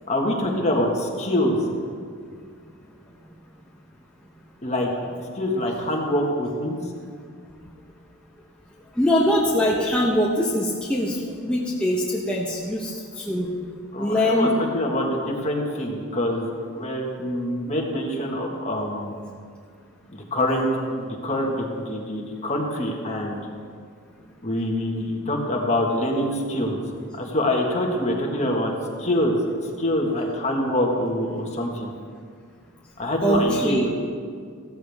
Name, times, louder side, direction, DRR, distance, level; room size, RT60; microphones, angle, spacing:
voice 1, 0.1-1.6 4.6-4.9 5.3-6.8 13.9-19.2 20.3-23.4 24.4-26.8 27.2-28.7 29.0-29.4 29.8-31.9 33.0-33.9, left 1 dB, 30° left, 0 dB, 1.6 m, -25 dB
voice 2, 9.0-13.5 14.0-14.5 33.2-33.9, equal, 5° left, -5 dB, 1.0 m, -22 dB
15.5 x 13.5 x 3.6 m, 2.1 s
head